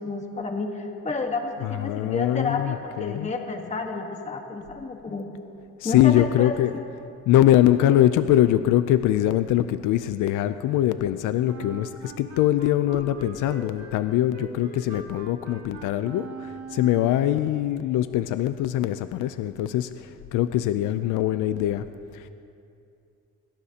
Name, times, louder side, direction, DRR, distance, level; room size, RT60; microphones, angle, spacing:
voice 1, 0.0-5.3 5.8-6.8, left 3 dB, 25° left, 3 dB, 1.4 m, -31 dB
voice 2, 1.6-3.3 5.8-6.7 7.3-21.9 22.1-22.3, left 12 dB, 90° left, 11 dB, 0.5 m, -23 dB
Wind instrument woodwind instrument, 11.4-17.5, right 4 dB, 65° right, 2.1 m, -41 dB
22.0 x 17.5 x 2.9 m, 2.6 s
cardioid pair, 90°, 30 cm